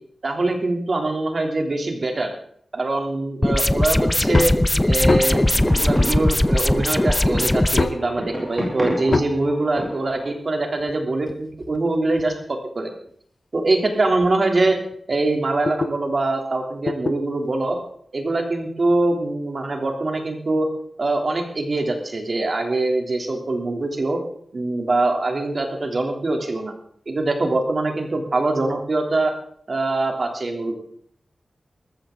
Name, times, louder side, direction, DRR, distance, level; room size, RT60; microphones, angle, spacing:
voice 1, 0.2-2.3 2.7-4.5 4.9-5.4 5.8-12.9 13.5-14.8 15.1-17.8 18.1-20.7 21.0-24.2 24.5-26.7 27.1-29.3 29.7-30.8, right 2 dB, 45° right, 3 dB, 3.1 m, -23 dB
sound 1, 3.4-7.8, left 1 dB, 15° left, 0.7 m, -19 dB
sound 2, 4.3-4.6 5.1-5.5 6.5-6.6 7.8-8.1 9.1-9.4 10.8-12.4 13.1-13.2 13.8-13.9 14.2-14.3 14.7-16.0 16.9-17.2 18.5-18.6, left 3 dB, 45° left, 0.8 m, -25 dB
sound 3, 5.0-10.3, equal, 15° right, 7.0 m, -31 dB
19.5 x 15.0 x 3.9 m, 0.63 s
wide cardioid pair, 130°, 0 cm